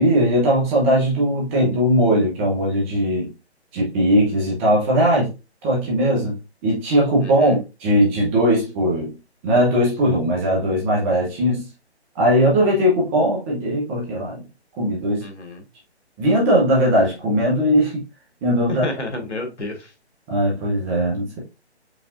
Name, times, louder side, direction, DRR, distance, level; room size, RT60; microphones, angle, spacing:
voice 1, 0.0-3.3 3.7-5.3 5.6-6.3 6.6-9.1 9.4-11.7 12.1-14.4 14.8-15.2 16.2-17.9 18.4-18.8 20.3-21.4, equal, 10° right, 0.9 m, -19 dB
voice 2, 7.2-7.6 15.2-15.6 18.7-19.9, left 2 dB, 85° left, 1.6 m, -30 dB
4.9 x 3.4 x 2.6 m
figure-of-eight pair, 155°, 34 cm